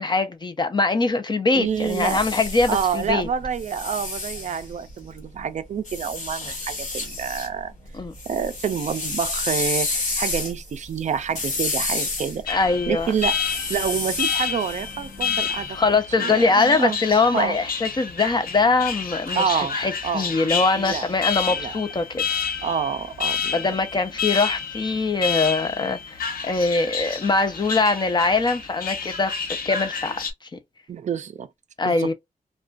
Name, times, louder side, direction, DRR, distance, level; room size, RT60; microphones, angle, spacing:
voice 1, 0.0-3.3 7.9-8.1 12.5-13.1 15.7-22.3 23.5-30.2 31.8-32.1, left 3 dB, 30° left, 0.5 m, -22 dB
voice 2, 1.5-2.2 2.7-7.7 8.3-12.6 12.9-13.4 13.7-15.8 16.2-17.0 17.3-17.6 19.4-19.8 20.0-20.3 20.8-21.1 21.6-21.8 22.6-23.8 30.9-31.5 31.9-32.1, right 7 dB, 55° right, 0.4 m, -27 dB
Robot Hand, 1.6-5.2 5.9-7.5 7.9-15.8, left 3 dB, 55° left, 1.2 m, -30 dB
Alarm, 12.5-30.3, left 6 dB, 75° left, 0.6 m, -29 dB
2.4 x 2.2 x 2.3 m
wide cardioid pair, 145°, 15 cm